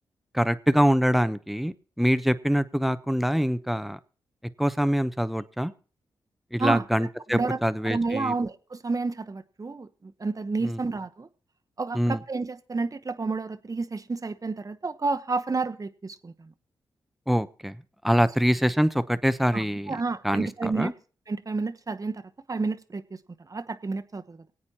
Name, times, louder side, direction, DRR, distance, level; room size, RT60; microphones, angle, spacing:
voice 1, 0.3-4.0 4.6-5.7 6.5-8.3 10.6-10.8 11.9-12.2 17.3-17.8 18.0-19.9 20.2-20.9, equal, ahead, 13 dB, 0.8 m, -24 dB
voice 2, 6.6-7.6 7.8-11.3 11.8-16.5 19.5-20.9 21.3-22.2 22.5-23.0 23.5-24.5, right 3 dB, 35° right, 9 dB, 1.0 m, -30 dB
24.0 x 8.6 x 2.9 m, 0.38 s
supercardioid pair, 45°, 10 cm